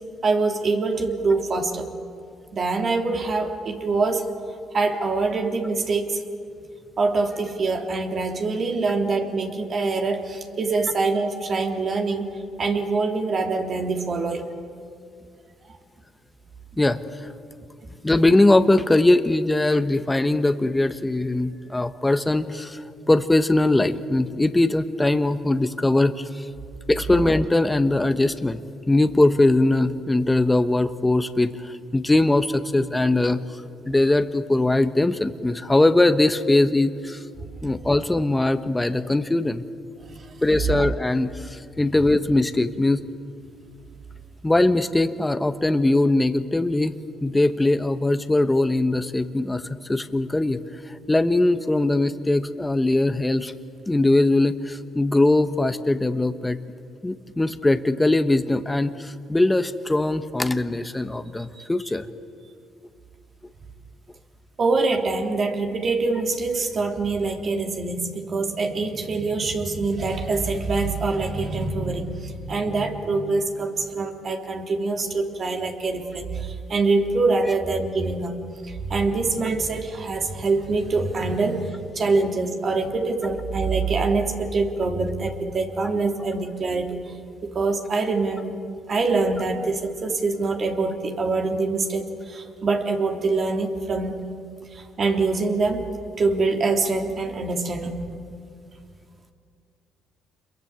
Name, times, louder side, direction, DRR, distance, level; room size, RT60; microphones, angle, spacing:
voice 1, 0.2-1.9 2.5-4.3 4.7-6.2 7.0-12.3 12.6-14.4 15.7-15.8 40.1-40.3 61.5-61.6 64.6-78.3 78.6-87.0 87.4-88.6 88.9-94.1 94.7-95.9 96.2-97.9, right 3 dB, 50° right, 3 dB, 3.4 m, -24 dB
voice 2, 16.8-17.3 18.0-26.5 26.9-28.6 28.9-33.4 33.9-37.2 37.6-39.6 40.4-43.0 44.4-50.6 50.9-53.5 53.9-56.6 57.0-62.1, left 2 dB, 15° left, 10 dB, 1.3 m, -21 dB
27.5 x 22.5 x 8.2 m, 2.3 s
supercardioid pair, 65°, 0 cm